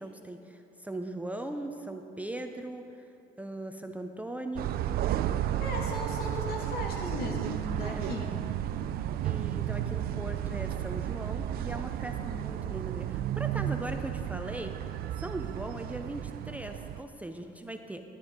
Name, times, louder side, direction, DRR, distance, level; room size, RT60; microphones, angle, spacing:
voice 1, 0.0-3.1 3.4-4.8 7.8-8.0 9.2-14.7 15.1-18.0, right 1 dB, 10° right, 5 dB, 0.5 m, -39 dB
sound 1, 4.6-17.0, right 11 dB, 65° right, 0.4 m, -33 dB
voice 2, 5.6-8.3, left 2 dB, 70° left, -1 dB, 2.0 m, -36 dB
10.5 x 10.5 x 3.7 m, 2.7 s
cardioid pair, 110°, 17 cm